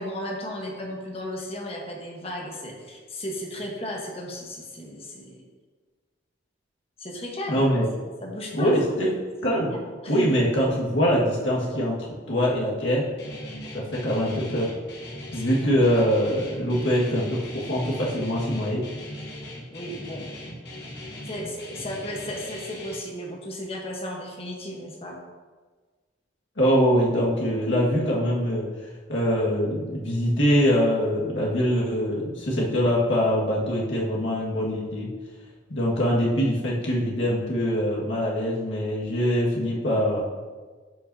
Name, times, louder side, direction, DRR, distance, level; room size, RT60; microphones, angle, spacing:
voice 1, 0.0-5.4 7.0-7.7 8.2-8.8 9.7-10.1 15.2-15.5 19.7-20.3 21.2-25.2, left 1 dB, 30° left, 0 dB, 1.2 m, -35 dB
voice 2, 7.5-7.9 8.5-9.1 9.4-9.8 10.1-12.0 12.3-13.1 13.7-14.7 15.3-18.8 26.6-28.7 29.1-35.1 35.7-40.3, equal, 75° left, -4 dB, 1.9 m, -23 dB
Guitar, 13.2-23.0, left 1 dB, 55° left, 1.4 m, -39 dB
10.0 x 5.4 x 2.8 m, 1.4 s
head